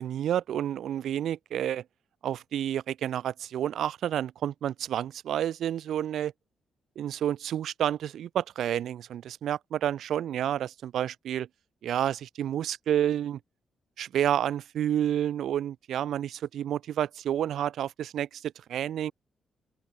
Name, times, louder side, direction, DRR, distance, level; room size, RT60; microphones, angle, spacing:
voice 1, 0.0-1.8 2.2-6.3 7.0-11.5 11.8-13.4 14.0-19.1, right 10 dB, 70° right, 0.4 m, -30 dB
open air
wide cardioid pair, 160°, 0 cm